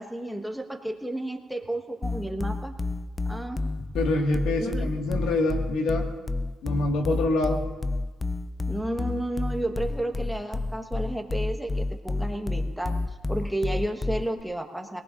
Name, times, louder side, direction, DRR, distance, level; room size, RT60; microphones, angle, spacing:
voice 1, 0.0-2.7 3.2-3.6 4.6-4.9 8.7-12.9 13.3-15.0, right 1 dB, ahead, 3 dB, 1.3 m, -32 dB
sound 1, 2.0-14.4, left 2 dB, 25° left, 0.5 m, -30 dB
voice 2, 3.8-6.1 6.6-7.7, left 2 dB, 90° left, 2 dB, 1.8 m, -26 dB
24.0 x 18.5 x 2.6 m, 1.3 s
cardioid pair, 90°, 0 cm